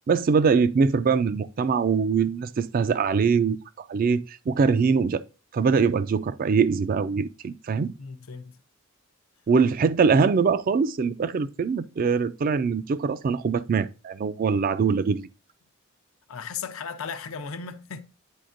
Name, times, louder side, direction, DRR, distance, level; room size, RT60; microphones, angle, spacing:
voice 1, 0.1-3.6 3.9-5.2 5.5-7.9 9.5-15.3, right 5 dB, 45° right, 0.3 m, -23 dB
voice 2, 8.0-8.6 16.3-18.0, left 6 dB, 85° left, 0.6 m, -36 dB
9.3 x 4.2 x 2.5 m
head